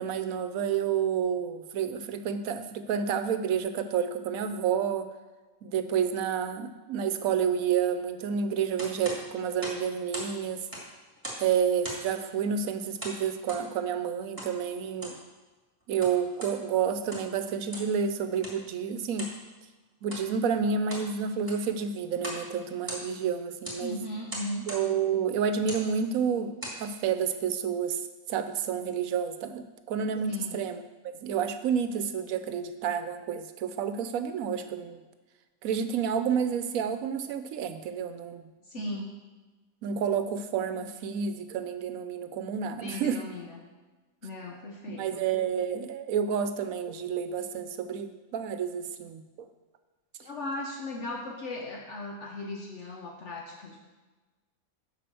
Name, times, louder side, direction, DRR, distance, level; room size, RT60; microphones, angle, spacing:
voice 1, 0.0-5.1 5.6-10.6 11.4-15.2 15.9-19.3 20.0-24.0 24.7-26.5 26.8-28.0 28.3-35.0 35.6-38.5 38.9-39.0 39.8-43.2 44.9-49.2, right 7 dB, 80° right, 9 dB, 1.1 m, -29 dB
sound 1, 8.8-10.3 10.6-11.5 11.8-12.2 13.0-13.7 14.4-14.5 14.9-15.2 15.8-16.6 17.0-17.4 17.7-18.0 18.4-18.6 19.2-19.4 20.0-20.3 20.7-21.1 21.4-21.7 22.2-22.5 22.7-23.3 23.6-23.8 24.3-24.9 25.6-25.9 26.4-26.8, right 1 dB, 15° right, 2.1 m, -39 dB
voice 2, 23.8-24.7 30.3-30.6 38.6-39.2 42.8-43.6 44.2-45.3 50.2-53.8, left 2 dB, 60° left, 0 dB, 1.2 m, -37 dB
7.6 x 5.5 x 6.8 m, 1.2 s
omnidirectional pair, 1.5 m